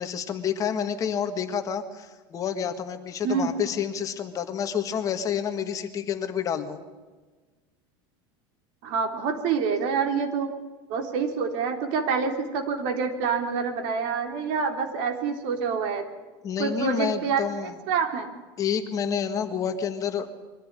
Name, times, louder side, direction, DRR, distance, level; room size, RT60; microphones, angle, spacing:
voice 1, 0.0-6.8 16.4-17.7 18.6-20.3, left 8 dB, 30° left, 8 dB, 1.7 m, -29 dB
voice 2, 8.8-10.5 10.9-16.1 16.6-17.5 17.9-18.3, right 6 dB, 60° right, 5 dB, 3.6 m, -27 dB
23.0 x 15.0 x 9.7 m, 1.3 s
cardioid pair, 160°, 12 cm